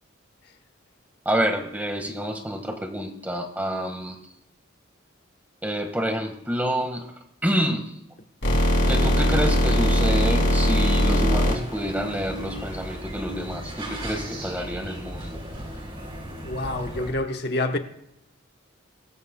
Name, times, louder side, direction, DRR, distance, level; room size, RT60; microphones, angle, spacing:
voice 1, 1.2-4.2 5.6-7.1 7.4-7.9 8.9-15.4, equal, 10° right, 1.7 m, -28 dB
sound 1, 8.4-13.0, equal, 70° left, 5.4 m, -20 dB
sound 2, 11.5-17.1, right 1 dB, 25° right, 3.5 m, -36 dB
voice 2, 16.4-17.8, left 2 dB, 50° left, 1.2 m, -27 dB
22.0 x 14.0 x 2.3 m
head